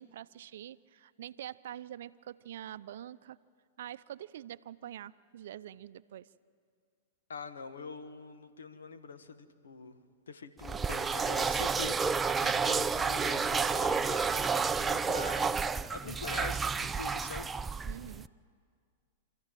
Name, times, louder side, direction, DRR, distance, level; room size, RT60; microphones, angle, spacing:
voice 1, 0.0-3.4 3.8-6.3 12.4-12.5 17.9-18.3, right 11 dB, 65° right, 15 dB, 0.5 m, -45 dB
voice 2, 7.3-10.0 10.3-17.5, left 5 dB, 80° left, 9 dB, 1.5 m, -44 dB
sound 1, 10.6-18.3, right 5 dB, 15° right, 0.5 m, -30 dB
27.0 x 14.0 x 9.1 m, 2.2 s
hypercardioid pair, 110°, 0 cm